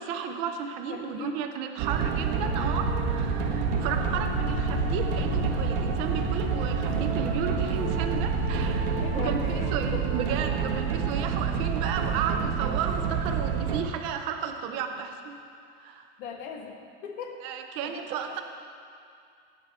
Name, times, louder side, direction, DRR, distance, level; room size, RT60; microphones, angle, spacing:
voice 1, 0.0-9.4 9.7-15.4 15.8-16.1 17.4-18.4, right 7 dB, 15° right, 5 dB, 0.3 m, -33 dB
voice 2, 0.9-1.3 2.3-2.4 3.9-4.1 9.0-10.1 16.2-17.4 17.8-18.4, left 6 dB, 45° left, 3 dB, 1.5 m, -39 dB
sound 1, 1.8-13.8, right 7 dB, 50° right, 1.4 m, -28 dB
sound 2, 2.4-9.7, left 12 dB, 90° left, 0.8 m, -35 dB
18.0 x 9.4 x 4.2 m, 2.4 s
supercardioid pair, 180°, 35 cm